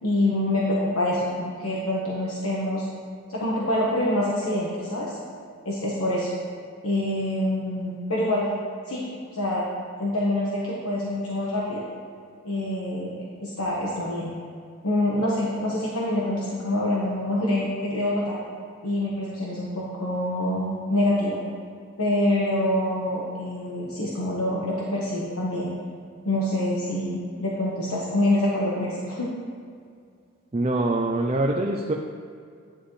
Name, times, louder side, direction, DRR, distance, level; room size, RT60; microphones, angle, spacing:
voice 1, 0.0-2.8 3.3-5.2 5.6-6.3 6.8-8.5 8.9-9.0 9.3-9.7 10.0-11.9 12.4-14.3 14.8-18.4 18.8-21.4 22.0-25.7 26.2-29.3, left 1 dB, 90° left, -5 dB, 1.3 m, -26 dB
voice 2, 30.5-31.9, right 2 dB, 30° right, 1 dB, 0.4 m, -24 dB
10.5 x 9.9 x 3.3 m, 2.2 s
head